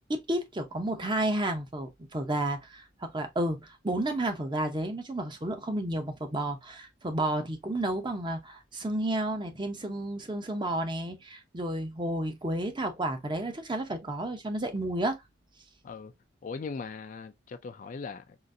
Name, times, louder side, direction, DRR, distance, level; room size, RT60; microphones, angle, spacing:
voice 1, 0.1-15.2, right 1 dB, 25° right, 0.7 m, -31 dB
voice 2, 16.4-18.4, left 4 dB, 40° left, 0.3 m, -39 dB
3.9 x 2.5 x 2.5 m
head